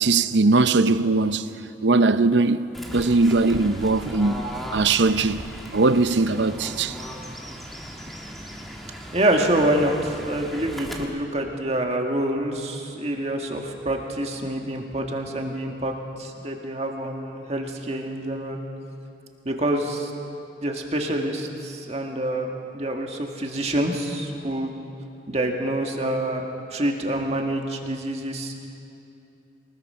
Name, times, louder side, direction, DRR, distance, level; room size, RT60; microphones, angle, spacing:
voice 1, 0.0-1.5 1.8-2.7 2.9-4.4 4.7-5.4 5.7-7.0, right 3 dB, 80° right, 0.7 m, -20 dB
Fowl / Bird, 2.7-11.0, equal, ahead, 1.7 m, -37 dB
voice 2, 9.1-18.6 19.5-20.1 20.6-22.5 22.7-24.7 25.3-26.4 26.7-28.5, right 1 dB, 35° right, 1.9 m, -26 dB
23.5 x 20.0 x 5.7 m
head